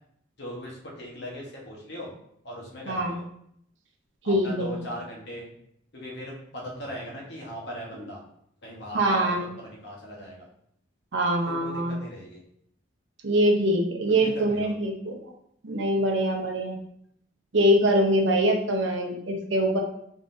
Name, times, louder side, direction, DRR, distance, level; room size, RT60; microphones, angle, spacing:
voice 1, 0.4-2.1 2.4-3.2 4.2-5.5 5.9-8.2 8.6-10.5 11.4-12.4 14.1-14.7, equal, 60° left, -2 dB, 1.1 m, -39 dB
voice 2, 2.9-3.2 4.3-4.7 8.9-9.4 11.1-12.0 13.2-15.2 15.6-16.8 17.5-19.8, right 1 dB, 70° right, 2 dB, 0.7 m, -23 dB
3.8 x 3.8 x 2.6 m, 0.71 s
head